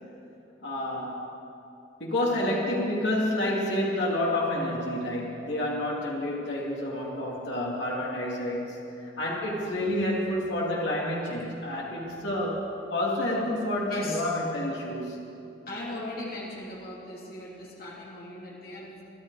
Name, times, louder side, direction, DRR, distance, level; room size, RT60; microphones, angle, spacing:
voice 1, 0.6-1.2 2.0-8.8 9.2-15.3, left 1 dB, 65° left, -4 dB, 2.5 m, -29 dB
voice 2, 13.9-14.2 15.7-19.0, left 1 dB, 50° left, -5 dB, 3.0 m, -38 dB
23.5 x 12.0 x 4.8 m, 2.7 s
head